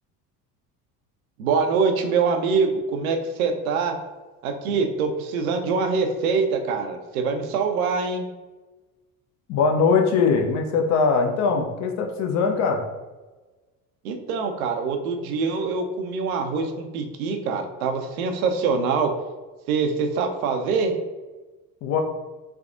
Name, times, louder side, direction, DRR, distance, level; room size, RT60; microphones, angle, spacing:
voice 1, 1.4-3.9 4.4-8.3 14.0-19.1 19.7-20.9, right 5 dB, 65° right, 5 dB, 0.6 m, -24 dB
voice 2, 9.5-12.8 21.8-22.0, left 5 dB, 35° left, 3 dB, 0.6 m, -21 dB
3.5 x 3.2 x 2.5 m, 1.2 s
figure-of-eight pair, 65°, 47 cm